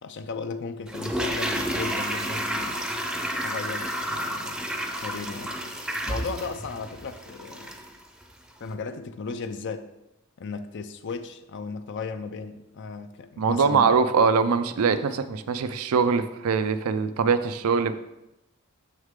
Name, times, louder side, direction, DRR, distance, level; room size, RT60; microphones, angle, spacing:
voice 1, 0.0-2.9 3.4-5.6 6.1-7.7 8.6-9.9 10.4-14.0, left 4 dB, 55° left, 10 dB, 0.5 m, -36 dB
Toilet flush, 0.9-8.0 8.2-8.3, equal, 5° right, 0.6 m, -31 dB
voice 2, 13.4-17.9, right 5 dB, 85° right, 12 dB, 0.5 m, -22 dB
6.5 x 6.4 x 3.6 m, 0.91 s
head